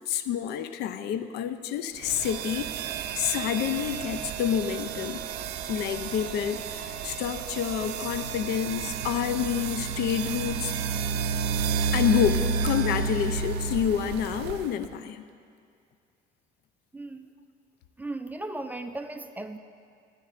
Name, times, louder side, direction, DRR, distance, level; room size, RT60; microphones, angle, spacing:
voice 1, 0.1-5.3 5.7-10.7 11.9-15.2, left 9 dB, 80° left, 11 dB, 0.4 m, -28 dB
sound 1, 2.0-14.9, right 5 dB, 85° right, 0.5 m, -31 dB
voice 2, 16.9-17.3 18.0-19.6, right 2 dB, 10° right, 7 dB, 0.4 m, -36 dB
14.0 x 9.4 x 2.5 m, 2.3 s
cardioid pair, 110°, 17 cm